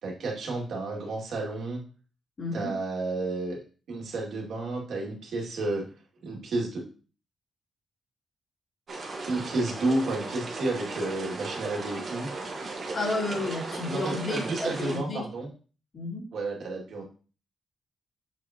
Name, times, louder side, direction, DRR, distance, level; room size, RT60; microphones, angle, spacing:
voice 1, 0.0-1.8 2.5-3.6 3.9-5.9 6.2-6.8 9.3-12.3 13.3-13.4 13.8-15.5 16.3-17.0, right 2 dB, 75° right, -1 dB, 2.3 m, -31 dB
voice 2, 2.4-2.7 12.9-15.2 15.9-16.2, left 2 dB, 40° left, -1 dB, 2.4 m, -32 dB
sound 1, 8.9-15.0, right 3 dB, 50° right, 1.5 m, -36 dB
7.4 x 4.7 x 2.9 m, 0.37 s
cardioid pair, 115°, 0 cm